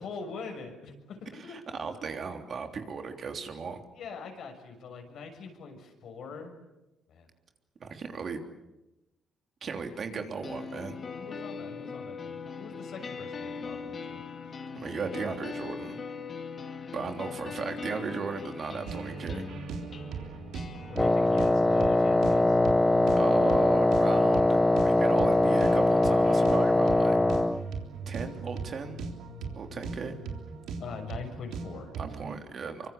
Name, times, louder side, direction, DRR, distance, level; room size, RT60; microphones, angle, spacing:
voice 1, 0.0-1.6 3.9-6.5 7.1-7.3 11.0-14.2 17.3-17.4 20.9-22.6 30.8-31.9, left 5 dB, 70° left, 4 dB, 6.6 m, -43 dB
voice 2, 1.3-3.8 7.8-8.4 9.6-11.0 14.7-16.0 16.9-19.4 23.1-27.2 28.1-29.0 29.5-30.2 32.0-32.9, right 5 dB, 50° right, 5 dB, 3.3 m, -36 dB
sound 1, 10.4-24.4, left 5 dB, 45° left, 2.7 m, -41 dB
sound 2, 18.9-32.3, right 4 dB, 85° right, 3.5 m, -39 dB
Wind instrument woodwind instrument, 21.0-27.6, left 2 dB, 15° left, 0.8 m, -22 dB
25.0 x 24.5 x 8.5 m, 0.98 s
cardioid pair, 90°, 0 cm